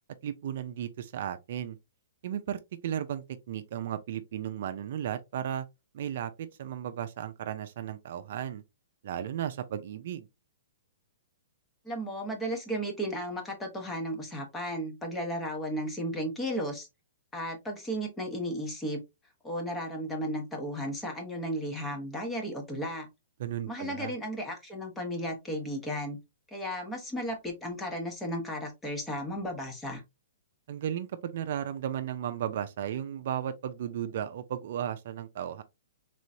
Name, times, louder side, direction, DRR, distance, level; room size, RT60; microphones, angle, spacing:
voice 1, 0.2-1.8 2.2-5.7 5.9-8.6 9.0-10.3 23.4-24.1 30.7-35.6, right 10 dB, 60° right, 0.4 m, -35 dB
voice 2, 11.8-16.9 17.3-19.0 19.4-23.1 23.7-26.2 26.5-30.0, equal, 10° left, 1.1 m, -34 dB
3.7 x 3.1 x 2.6 m
hypercardioid pair, 145°, 0 cm